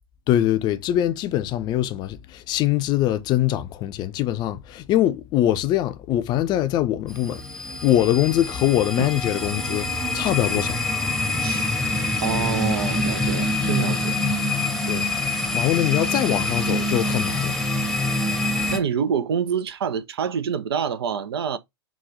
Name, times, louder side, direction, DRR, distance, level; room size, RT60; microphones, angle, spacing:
voice 1, 0.3-10.8 14.9-15.2 15.5-17.6, left 13 dB, 30° left, 0.5 m, -23 dB
sound 1, 7.1-18.8, left 2 dB, ahead, 0.8 m, -25 dB
voice 2, 12.2-14.2 18.7-21.6, right 7 dB, 65° right, 0.5 m, -26 dB
4.2 x 2.3 x 3.6 m
figure-of-eight pair, 95°, 14 cm